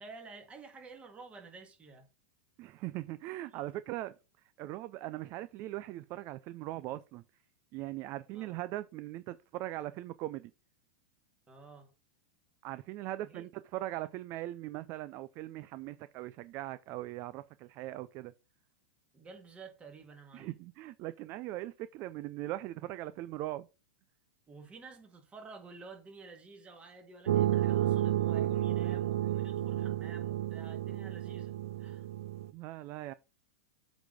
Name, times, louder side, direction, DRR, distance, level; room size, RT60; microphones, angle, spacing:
voice 1, 0.0-2.1 3.5-3.6 8.3-8.6 11.5-11.9 13.2-13.5 19.1-20.6 24.5-32.1, right 4 dB, 15° right, 1.8 m, -51 dB
voice 2, 2.6-4.1 4.6-7.2 7.7-10.5 12.6-18.3 20.3-23.7 32.5-33.1, right 15 dB, 35° right, 0.4 m, -40 dB
sound 1, 27.3-32.5, right 12 dB, 90° right, 0.5 m, -31 dB
8.1 x 4.1 x 4.9 m
supercardioid pair, 140°, 7 cm